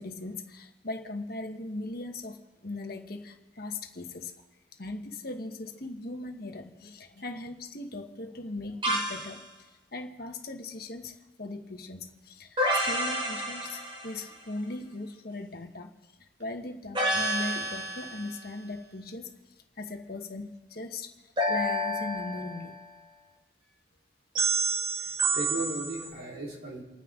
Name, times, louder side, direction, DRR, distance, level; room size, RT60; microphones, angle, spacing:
voice 1, 0.0-4.3 4.8-9.5 9.9-15.9 16.2-19.3 19.8-22.8, left 2 dB, 55° left, 4 dB, 1.4 m, -39 dB
sound 1, 8.8-9.4 12.6-14.3 17.0-18.4 21.4-22.8 24.4-26.1, right 1 dB, 25° right, 1.7 m, -29 dB
voice 2, 25.0-26.8, right 2 dB, 55° right, -3 dB, 4.0 m, -36 dB
29.5 x 9.9 x 3.8 m, 1.1 s
head